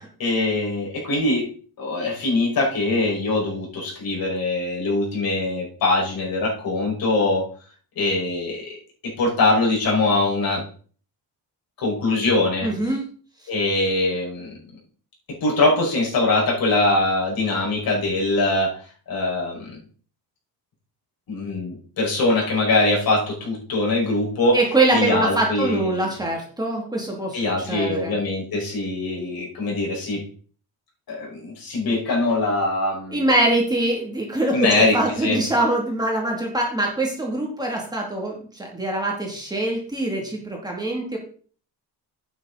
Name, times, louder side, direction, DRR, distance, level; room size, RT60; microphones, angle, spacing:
voice 1, 0.2-1.5 1.8-7.5 8.0-8.8 9.0-10.6 11.8-12.7 13.5-14.5 15.4-18.8 19.1-19.7 21.3-24.6 24.9-26.1 27.3-30.2 31.1-33.3 34.5-35.4, left 2 dB, 60° left, -2 dB, 5.3 m, -22 dB
voice 2, 12.6-13.0 24.5-28.1 33.1-41.2, right 2 dB, 10° right, -1 dB, 2.6 m, -23 dB
11.0 x 9.3 x 4.0 m, 0.43 s
cardioid pair, 170°, 40 cm